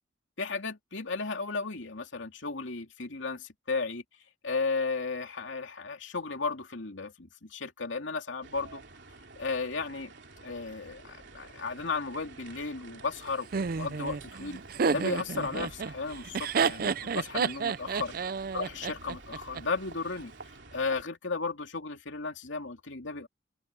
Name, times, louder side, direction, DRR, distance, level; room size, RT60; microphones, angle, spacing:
voice 1, 0.4-4.0 4.4-8.8 9.4-10.1 10.4-13.5 13.8-14.6 14.9-18.1 18.5-20.3 20.7-23.3, left 4 dB, 75° left, 2.6 m, -34 dB
sound 1, 8.4-21.0, right 3 dB, 65° right, 3.2 m, -50 dB
Laughter, 13.5-19.6, right 5 dB, 45° right, 0.4 m, -30 dB
open air
head